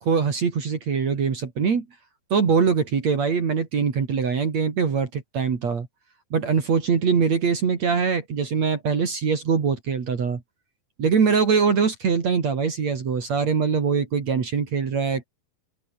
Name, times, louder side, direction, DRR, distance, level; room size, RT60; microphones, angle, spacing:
voice 1, 0.0-1.9 2.3-5.9 6.3-10.4 11.0-15.3, right 6 dB, 50° right, 4.0 m, -23 dB
omnidirectional pair, 4.1 m